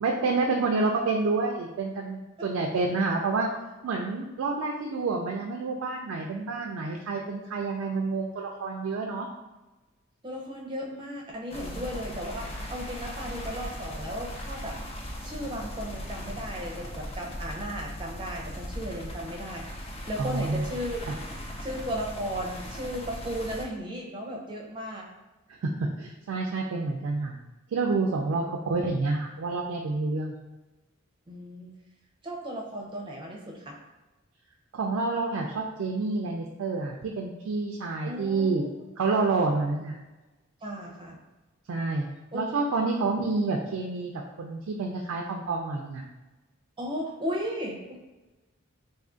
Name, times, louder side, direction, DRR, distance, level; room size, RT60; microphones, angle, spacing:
voice 1, 0.0-3.5 3.8-9.3 20.2-20.7 21.1-21.2 25.6-25.7 26.0-27.4 27.7-30.3 34.7-38.6 39.0-40.0 41.7-42.1 42.3-44.1 44.4-46.0, right 3 dB, 80° right, 1 dB, 0.3 m, -28 dB
voice 2, 10.2-14.8 15.2-21.1 21.6-25.1 31.3-31.7 32.2-33.8 38.1-38.7 40.6-41.2 42.3-42.4 46.8-48.0, equal, 25° right, -1 dB, 0.5 m, -35 dB
sound 1, 11.5-23.6, equal, 30° left, 0.4 m, -38 dB
2.6 x 2.4 x 3.7 m, 1.1 s
head